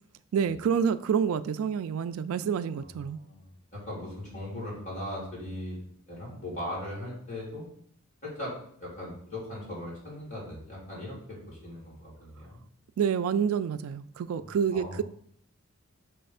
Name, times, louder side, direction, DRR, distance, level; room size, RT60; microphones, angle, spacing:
voice 1, 0.3-3.2 13.0-15.0, right 7 dB, 75° right, 13 dB, 0.3 m, -28 dB
voice 2, 2.8-7.7 8.2-12.6 14.4-15.0, left 1 dB, 35° left, -6 dB, 3.0 m, -39 dB
6.5 x 3.4 x 5.4 m, 0.63 s
head